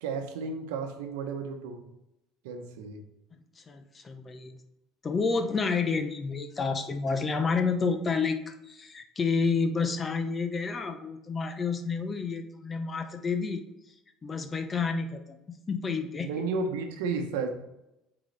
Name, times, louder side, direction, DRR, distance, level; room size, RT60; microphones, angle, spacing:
voice 1, 0.0-1.9 2.4-3.0 16.2-17.5, right 4 dB, 90° right, 5 dB, 0.9 m, -33 dB
voice 2, 3.6-4.6 5.0-13.6 14.2-15.4 15.7-16.3, left 4 dB, 30° left, 8 dB, 0.7 m, -29 dB
7.8 x 4.0 x 3.3 m, 0.89 s
supercardioid pair, 100°, 0 cm